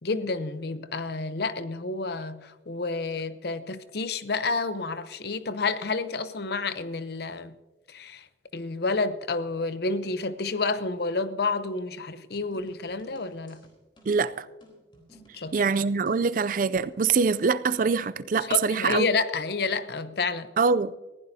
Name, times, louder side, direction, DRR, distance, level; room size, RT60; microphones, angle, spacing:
voice 1, 0.0-7.5 7.9-8.3 8.5-13.6 15.3-15.6 18.5-20.5, left 3 dB, 60° left, 0.7 m, -29 dB
sound 1, 12.3-17.4, equal, 25° left, 3.7 m, -57 dB
voice 2, 14.1-14.5 15.5-19.1 20.6-21.0, right 5 dB, 45° right, 0.4 m, -24 dB
20.5 x 15.5 x 2.8 m
head